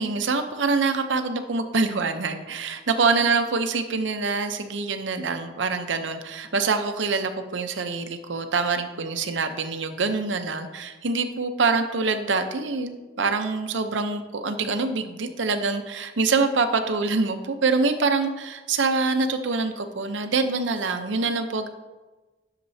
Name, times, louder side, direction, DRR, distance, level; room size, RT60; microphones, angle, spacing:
voice 1, 0.0-21.7, right 4 dB, 75° right, 8 dB, 0.7 m, -25 dB
11.0 x 6.7 x 2.7 m, 1.2 s
head